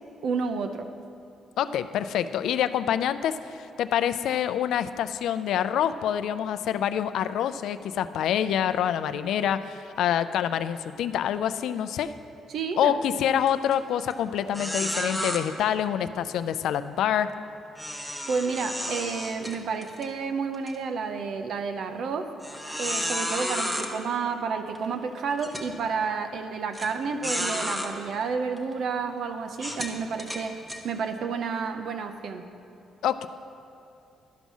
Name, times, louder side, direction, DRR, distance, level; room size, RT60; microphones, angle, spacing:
voice 1, 0.2-0.9 12.5-13.0 18.3-22.3 22.8-32.5, right 5 dB, 70° right, 7 dB, 0.6 m, -30 dB
voice 2, 1.6-12.1 12.8-17.3 33.0-33.3, left 9 dB, 80° left, 12 dB, 0.3 m, -26 dB
sound 1, 13.5-13.7 14.1-14.2 14.5-15.4 17.8-20.1 20.5-20.7 21.3-21.4 22.4-23.9 24.7-24.8 25.4-25.7 26.7-26.9 27.2-27.9 28.6-28.7 29.5-30.8, equal, 5° right, 1.0 m, -31 dB
11.5 x 5.4 x 6.1 m, 2.7 s
cardioid pair, 90°, 0 cm